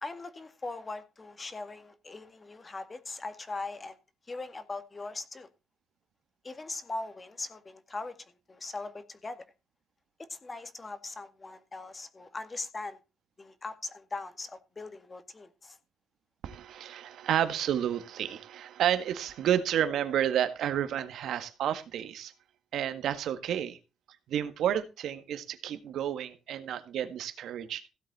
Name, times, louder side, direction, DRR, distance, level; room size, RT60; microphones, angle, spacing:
voice 1, 0.0-4.0 4.3-5.5 6.4-8.2 8.5-9.5 10.3-13.0 13.4-15.8, left 3 dB, 25° left, 1.9 m, -40 dB
voice 2, 16.4-22.3 22.7-23.8 24.3-27.9, right 10 dB, 85° right, 1.7 m, -30 dB
16.5 x 8.0 x 4.2 m
cardioid pair, 125°, 0 cm